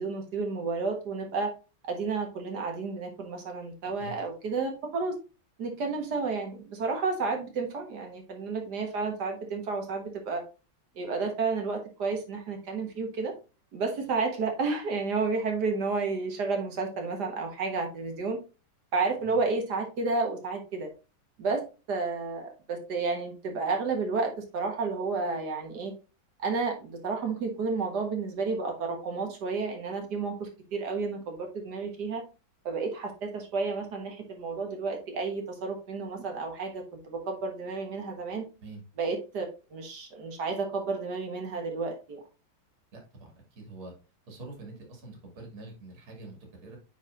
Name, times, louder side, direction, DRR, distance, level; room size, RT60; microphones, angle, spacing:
voice 1, 0.0-1.5 1.8-5.2 5.6-10.4 10.9-13.3 13.7-18.4 18.9-20.9 21.4-25.9 26.4-32.2 32.6-38.5 39.0-42.2, right 4 dB, 55° right, 3 dB, 1.8 m, -31 dB
voice 2, 3.8-4.2 19.2-19.4 38.6-38.8 42.9-43.9 44.3-46.8, right 3 dB, 85° right, 2 dB, 3.0 m, -45 dB
8.9 x 4.3 x 2.5 m, 0.31 s
omnidirectional pair, 2.3 m